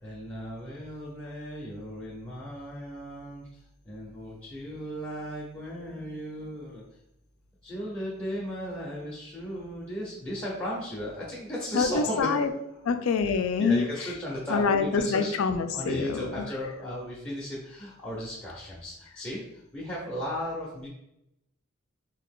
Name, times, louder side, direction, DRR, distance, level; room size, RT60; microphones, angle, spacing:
voice 1, 0.0-3.5 3.8-6.8 7.6-12.5 13.6-15.3 15.7-19.4 19.7-20.9, equal, 10° left, -7 dB, 0.5 m, -35 dB
voice 2, 11.7-12.5 12.9-13.9 14.5-16.4, left 5 dB, 75° left, 8 dB, 0.3 m, -25 dB
2.8 x 2.4 x 3.6 m, 0.82 s
head